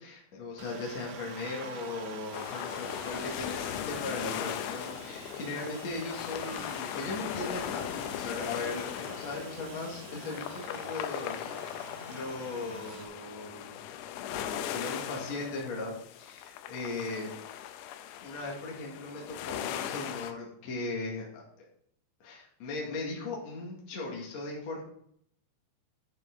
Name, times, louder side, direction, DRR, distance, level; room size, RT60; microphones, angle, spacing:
voice 1, 0.0-11.5 12.1-13.8 14.2-17.3 18.2-21.4 22.2-24.8, left 3 dB, 50° left, -3 dB, 2.8 m, -38 dB
Aircraft, 0.6-13.0, right 5 dB, 90° right, 1.4 m, -47 dB
sound 1, 2.3-20.3, left 11 dB, 85° left, 2.6 m, -39 dB
12.0 x 6.0 x 3.8 m, 0.68 s
omnidirectional pair, 4.6 m